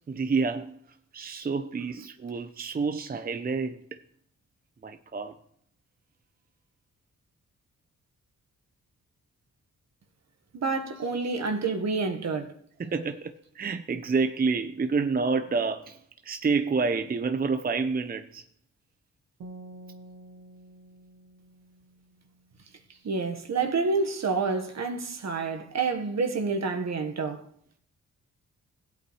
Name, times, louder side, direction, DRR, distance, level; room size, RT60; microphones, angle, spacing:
voice 1, 0.1-0.7 1.1-3.8 4.8-5.3 12.8-18.4, right 4 dB, 30° right, 0.6 m, -28 dB
voice 2, 10.5-12.5 23.0-27.4, right 4 dB, 55° right, 1.4 m, -28 dB
sound 1, 19.4-22.6, right 2 dB, 85° right, 1.2 m, -48 dB
15.5 x 8.4 x 3.2 m
cardioid pair, 65°, 32 cm